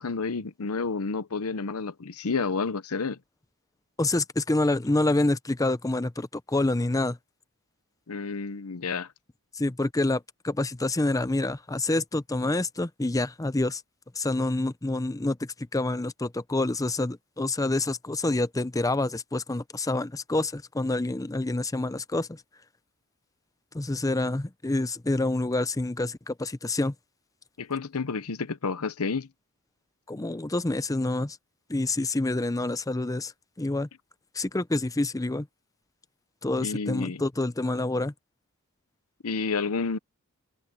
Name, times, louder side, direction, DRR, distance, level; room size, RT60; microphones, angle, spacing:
voice 1, 0.0-3.2 8.1-9.1 27.6-29.3 36.6-37.2 39.2-40.0, left 4 dB, 75° left, 0.9 m, -30 dB
voice 2, 4.0-7.2 9.5-13.8 14.2-22.4 23.7-26.9 30.1-31.4 31.7-33.3 33.6-33.9 34.3-35.5 36.4-38.1, left 2 dB, 15° left, 0.6 m, -27 dB
head